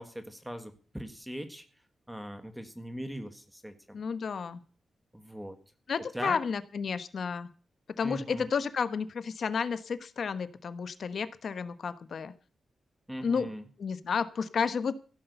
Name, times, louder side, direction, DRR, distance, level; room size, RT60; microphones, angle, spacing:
voice 1, 0.0-1.6 2.1-4.0 5.1-5.6 6.1-6.4 8.0-8.5 13.1-13.6, equal, 5° right, 8 dB, 1.6 m, -40 dB
voice 2, 3.9-4.6 5.9-7.5 8.0-12.3 13.2-13.5 13.8-14.9, left 6 dB, 55° left, 13 dB, 1.0 m, -31 dB
15.5 x 8.6 x 6.8 m, 0.39 s
wide cardioid pair, 145°, 0 cm